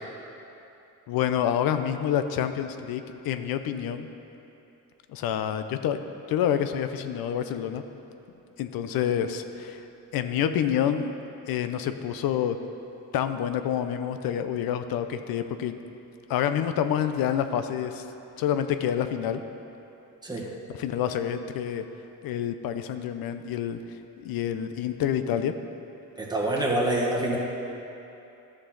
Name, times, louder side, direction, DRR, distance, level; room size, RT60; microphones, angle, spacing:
voice 1, 1.1-4.1 5.1-6.0 6.3-7.8 8.6-9.8 10.1-11.1 11.4-12.6 13.1-15.7 16.3-18.0 18.4-19.4 20.4-21.8 22.2-23.8 24.2-25.5 26.6-26.7, left 9 dB, 90° left, 9 dB, 0.6 m, -28 dB
voice 2, 26.2-27.4, right 1 dB, 10° right, -4 dB, 1.6 m, -26 dB
12.5 x 6.3 x 3.9 m, 2.9 s
cardioid pair, 100°, 35 cm